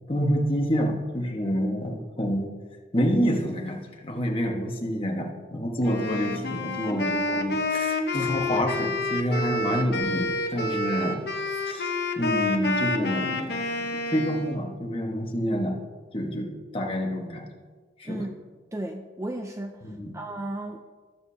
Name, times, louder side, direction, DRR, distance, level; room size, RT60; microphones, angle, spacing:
voice 1, 0.1-2.5 2.9-15.8 16.1-17.5 18.0-18.3 19.8-20.1, equal, 30° left, 1 dB, 1.4 m, -28 dB
Wind instrument woodwind instrument, 5.8-14.6, left 2 dB, 60° left, 0.9 m, -28 dB
voice 2, 18.7-20.8, right 1 dB, 15° right, 4 dB, 0.5 m, -34 dB
19.0 x 7.5 x 2.8 m, 1.4 s
head